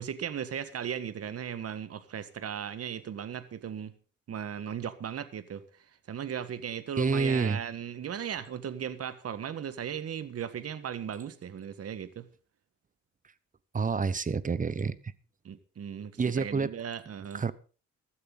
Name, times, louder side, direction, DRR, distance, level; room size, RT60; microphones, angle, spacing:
voice 1, 0.0-4.0 4.3-12.3 15.4-17.5, right 8 dB, 50° right, 1.5 m, -37 dB
voice 2, 7.0-7.6 13.7-14.9 16.2-16.7 17.3-17.5, right 5 dB, 25° right, 0.9 m, -28 dB
15.5 x 13.0 x 4.0 m
cardioid pair, 90°, 30 cm